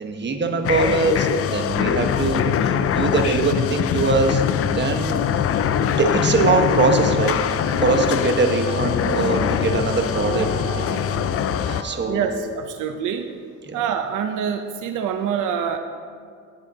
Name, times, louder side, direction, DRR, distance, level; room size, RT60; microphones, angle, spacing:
voice 1, 0.0-4.4 4.7-5.2 6.0-7.4 7.8-10.8 11.6-12.3 13.7-13.8, right 3 dB, 35° right, 4 dB, 1.2 m, -22 dB
sound 1, 0.6-11.8, left 8 dB, 50° left, 0.5 m, -22 dB
sound 2, 7.0-12.1, right 1 dB, 55° right, 2.0 m, -36 dB
voice 2, 12.0-13.3 13.7-15.8, right 7 dB, 85° right, 7 dB, 0.6 m, -25 dB
17.5 x 7.6 x 2.8 m, 2.2 s
cardioid pair, 90°, 30 cm